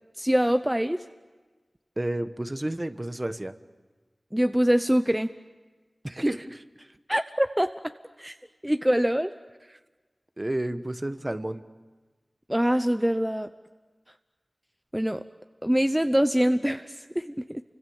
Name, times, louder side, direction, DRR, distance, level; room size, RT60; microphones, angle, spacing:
voice 1, 0.2-1.0 4.3-5.3 7.1-7.7 8.2-8.4 8.6-9.3 12.5-13.5 14.9-15.2 15.6-17.6, equal, 10° right, 9 dB, 0.8 m, -24 dB
voice 2, 2.0-3.5 6.0-6.9 10.4-11.6, right 1 dB, 30° right, 11 dB, 1.2 m, -31 dB
29.5 x 25.0 x 7.2 m, 1.3 s
wide cardioid pair, 45°, 0 cm